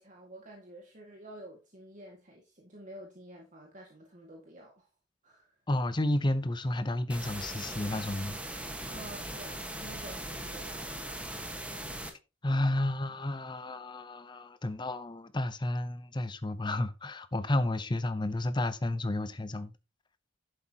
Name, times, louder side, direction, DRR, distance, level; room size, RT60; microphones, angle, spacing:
voice 1, 0.0-4.9 5.2-5.5 8.9-11.4, right 1 dB, 40° right, 2.0 m, -50 dB
voice 2, 5.7-8.6 12.4-19.7, left 1 dB, 25° left, 0.7 m, -31 dB
sound 1, 7.1-12.1, right 1 dB, 5° right, 1.4 m, -39 dB
11.0 x 8.0 x 2.9 m
head